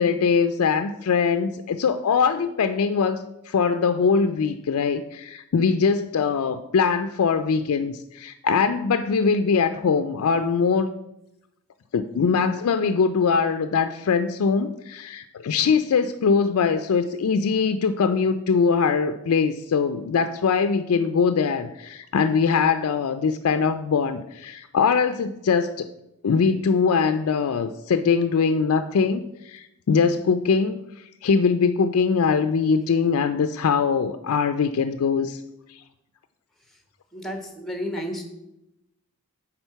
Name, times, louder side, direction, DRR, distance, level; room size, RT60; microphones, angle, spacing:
voice 1, 0.0-10.9 11.9-25.9 26.2-35.4 35.7-35.8, left 5 dB, 80° left, 9 dB, 0.4 m, -22 dB
voice 2, 37.1-38.2, equal, ahead, 4 dB, 1.1 m, -32 dB
9.0 x 3.6 x 5.6 m, 0.86 s
head